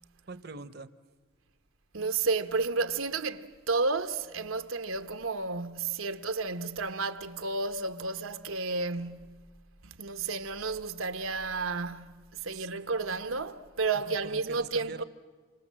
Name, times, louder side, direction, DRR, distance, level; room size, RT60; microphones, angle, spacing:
voice 1, 0.3-0.9 12.6-12.7 14.2-15.0, right 3 dB, 50° right, 0.8 m, -43 dB
voice 2, 1.9-9.4 9.8-15.0, right 4 dB, 90° right, 1.2 m, -32 dB
28.5 x 26.5 x 7.6 m
head